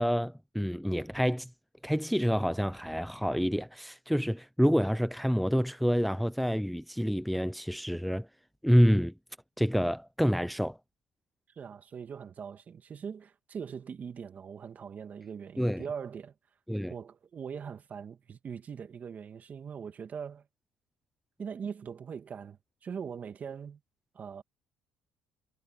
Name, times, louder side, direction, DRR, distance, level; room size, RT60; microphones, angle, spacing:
voice 1, 0.0-1.5 1.8-8.3 8.6-9.1 9.6-10.8 15.6-15.8 16.7-16.9, equal, ahead, 0.8 m, -27 dB
voice 2, 11.5-16.3 16.9-20.5 21.4-23.8 24.1-24.4, right 7 dB, 45° right, 2.5 m, -41 dB
supercardioid pair, 80°, 4 cm